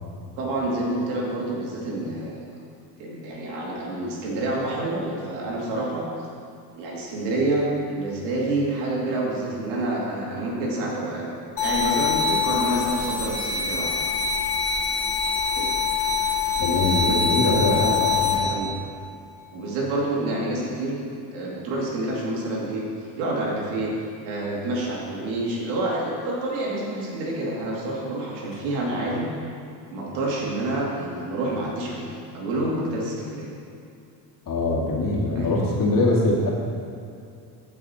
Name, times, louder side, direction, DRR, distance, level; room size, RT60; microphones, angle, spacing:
voice 1, 0.4-2.4 3.0-6.1 6.8-11.3 11.6-13.9 15.5-15.7 16.5-18.7 19.5-21.0 21.3-22.9 23.2-23.9 24.3-29.3 29.9-33.5 35.4-35.6, right 2 dB, 90° right, -3 dB, 2.5 m, -28 dB
sound 1, 11.6-18.4, left 5 dB, 60° left, 2.3 m, -24 dB
voice 2, 16.6-18.3 34.5-36.5, left 2 dB, 45° left, -3 dB, 2.4 m, -23 dB
14.5 x 5.6 x 4.3 m, 2.5 s
supercardioid pair, 95°, 47 cm